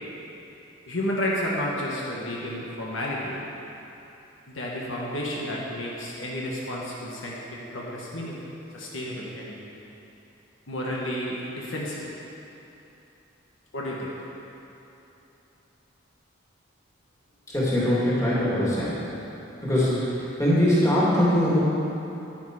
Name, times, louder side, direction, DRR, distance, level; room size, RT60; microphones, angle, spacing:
voice 1, 0.9-3.4 4.5-7.4 7.7-8.4 8.7-9.6 10.7-12.1 13.7-14.1, left 1 dB, 70° left, -4 dB, 1.5 m, -31 dB
voice 2, 17.5-19.1 19.6-21.6, equal, 15° left, -9 dB, 2.7 m, -22 dB
10.0 x 10.0 x 4.9 m, 3.0 s
head